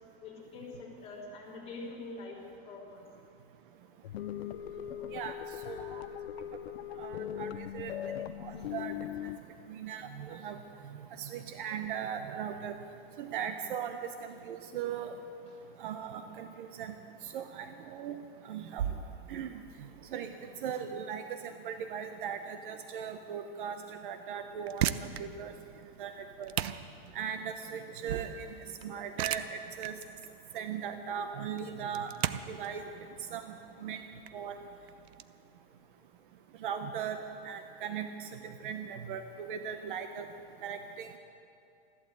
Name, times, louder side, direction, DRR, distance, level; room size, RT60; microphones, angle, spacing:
voice 1, 0.2-3.1 4.7-5.1 5.6-5.9 8.6-8.7 15.5-15.6, left 3 dB, 20° left, -5 dB, 3.5 m, -46 dB
sound 1, 4.0-9.4, left 11 dB, 80° left, 0.7 m, -39 dB
voice 2, 5.7-6.0 7.0-7.9 8.4-8.9 9.7-10.6 11.2-12.7 13.2-15.2 15.8-16.9 17.2-18.2 18.5-18.9 19.3-19.6 20.1-20.3 20.6-25.5 26.0-26.5 27.1-28.5 28.8-30.0 30.5-32.1 32.5-32.8 33.3-33.4 33.8-34.0 34.3-34.6 36.6-40.2 40.6-41.2, right 8 dB, 55° right, 7 dB, 0.9 m, -38 dB
sound 2, 24.5-35.3, right 11 dB, 80° right, 0.8 m, -38 dB
14.0 x 12.5 x 8.0 m, 2.6 s
supercardioid pair, 170°, 31 cm